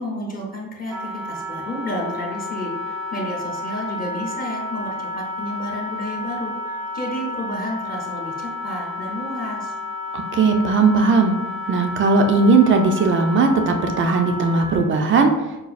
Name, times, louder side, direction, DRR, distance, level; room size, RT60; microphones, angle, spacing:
voice 1, 0.0-9.7, equal, 25° left, -2 dB, 0.6 m, -31 dB
Wind instrument woodwind instrument, 0.8-15.0, left 2 dB, 80° right, 1.1 m, -31 dB
voice 2, 10.1-11.4 11.7-15.3, right 4 dB, 40° right, 5 dB, 0.4 m, -17 dB
5.3 x 2.3 x 2.4 m, 1.0 s
cardioid pair, 170°, 33 cm